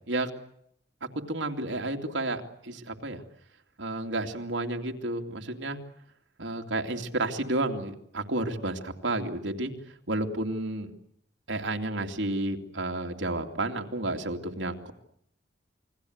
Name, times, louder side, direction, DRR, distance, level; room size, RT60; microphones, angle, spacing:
voice 1, 1.1-3.2 3.8-5.8 6.4-10.9 11.5-14.9, right 2 dB, 80° right, 4 dB, 2.7 m, -31 dB
28.5 x 21.0 x 8.1 m, 0.71 s
head